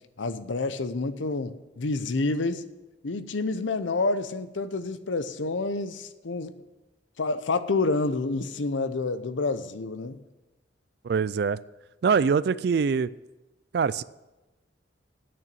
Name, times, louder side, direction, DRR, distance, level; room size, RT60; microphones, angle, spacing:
voice 1, 0.2-2.7 3.0-6.6 7.2-10.2, left 3 dB, 75° left, 12 dB, 0.7 m, -28 dB
voice 2, 11.0-11.6 12.0-13.1 13.7-14.0, right 5 dB, 55° right, 18 dB, 0.3 m, -23 dB
8.8 x 6.8 x 8.4 m, 1.1 s
head